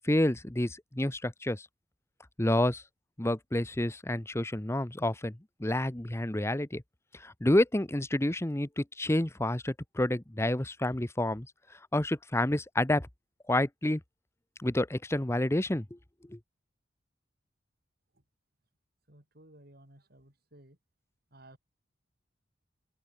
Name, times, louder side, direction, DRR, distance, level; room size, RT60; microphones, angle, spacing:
voice 1, 0.0-1.7 2.4-2.8 3.2-6.8 7.2-11.5 11.9-13.1 13.5-14.0 14.6-15.8 16.3-16.4, left 1 dB, 15° left, 0.9 m, -29 dB
voice 2, 19.1-20.8 21.3-21.6, right 1 dB, 55° right, 4.9 m, -56 dB
open air
head